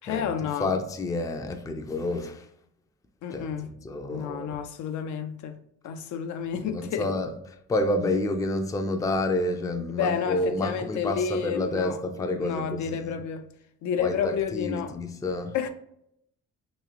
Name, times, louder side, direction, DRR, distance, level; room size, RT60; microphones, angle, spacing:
voice 1, 0.0-0.7 3.2-3.7 4.1-5.6 5.8-7.1 9.9-12.0 12.4-13.5 13.8-14.9 15.5-15.7, left 7 dB, 75° left, 0.5 m, -30 dB
voice 2, 0.6-2.5 3.3-3.5 3.8-4.6 6.6-7.3 7.7-13.2 14.0-15.6, left 2 dB, 10° left, 0.3 m, -29 dB
3.0 x 2.7 x 2.4 m
cardioid pair, 90°, 30 cm